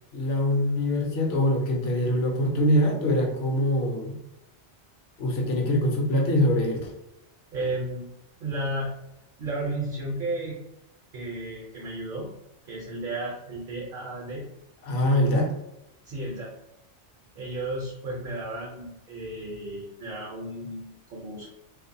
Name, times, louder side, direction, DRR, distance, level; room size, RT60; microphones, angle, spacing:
voice 1, 0.1-4.2 5.2-6.9 14.8-15.5, left 1 dB, 70° left, 0 dB, 0.8 m, -24 dB
voice 2, 7.5-8.1 8.4-8.9 9.4-10.6 11.1-12.3 12.7-14.4 16.0-16.5 17.3-21.5, right 2 dB, 60° right, -3 dB, 0.7 m, -33 dB
2.4 x 2.1 x 2.6 m, 0.87 s
omnidirectional pair, 1.2 m